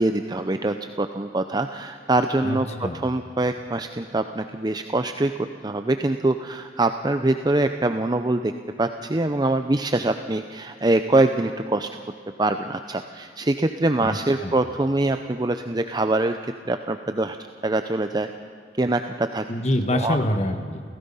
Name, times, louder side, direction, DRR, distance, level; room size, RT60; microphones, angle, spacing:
voice 1, 0.0-2.7 2.9-5.3 5.6-8.5 8.8-11.9 12.4-17.4 17.6-18.3 18.8-19.4 19.9-20.2, right 2 dB, 25° right, 8 dB, 0.6 m, -24 dB
voice 2, 2.4-3.0 14.0-14.5 19.5-20.8, left 1 dB, 35° left, 7 dB, 1.5 m, -26 dB
28.5 x 16.5 x 5.6 m, 2.4 s
head